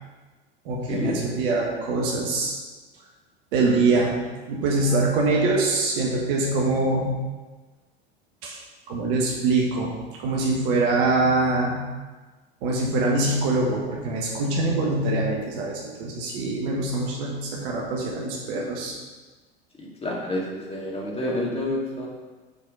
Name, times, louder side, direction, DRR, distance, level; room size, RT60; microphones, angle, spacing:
voice 1, 0.6-2.5 3.5-4.1 4.5-7.1 8.4-8.6 8.9-9.9 10.2-11.8 12.6-18.9, right 2 dB, 60° right, -2 dB, 1.5 m, -24 dB
voice 2, 19.8-22.1, left 1 dB, 20° left, -2 dB, 2.0 m, -29 dB
7.3 x 4.4 x 5.4 m, 1.3 s
hypercardioid pair, 85°, 30 cm